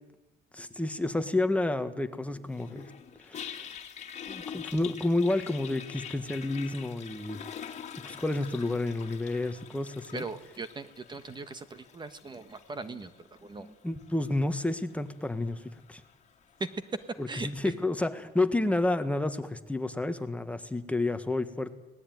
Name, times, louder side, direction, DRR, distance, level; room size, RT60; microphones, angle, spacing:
voice 1, 0.5-2.9 3.2-3.7 4.3-7.7 8.0-10.2 12.9-13.0 13.6-16.0 17.2-21.7, left 2 dB, 10° left, 9 dB, 1.5 m, -30 dB
Toilet flush, 2.5-17.7, left 8 dB, 40° left, 2.7 m, -46 dB
voice 2, 10.1-13.1 13.4-13.7 17.3-17.5, right 3 dB, 25° right, 12 dB, 1.4 m, -40 dB
24.5 x 19.0 x 9.4 m, 1.1 s
cardioid pair, 110°, 17 cm